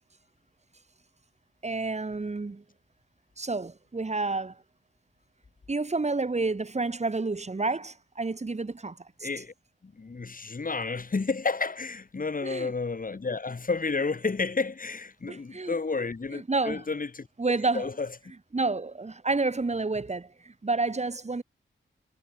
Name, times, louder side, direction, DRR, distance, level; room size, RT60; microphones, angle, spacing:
voice 1, 1.6-2.6 3.4-4.6 5.7-9.3 12.4-12.7 15.3-15.8 16.3-16.8 17.4-17.9 18.5-21.4, right 3 dB, 35° right, 7.9 m, -30 dB
voice 2, 9.2-9.5 9.8-17.3 17.7-18.1, left 4 dB, 40° left, 7.1 m, -31 dB
wide cardioid pair, 115°, 21 cm